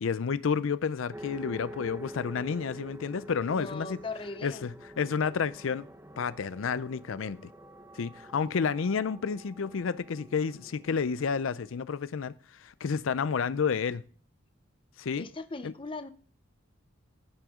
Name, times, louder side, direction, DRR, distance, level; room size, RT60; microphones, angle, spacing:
voice 1, 0.0-4.0 4.4-5.8 6.2-7.5 7.9-14.0 15.0-15.3 15.6-15.7, left 6 dB, 80° left, 0.5 m, -30 dB
sound 1, 1.1-11.8, equal, 10° right, 0.9 m, -47 dB
voice 2, 3.5-4.7 15.2-16.1, left 3 dB, 25° left, 0.7 m, -39 dB
15.0 x 7.7 x 3.7 m
head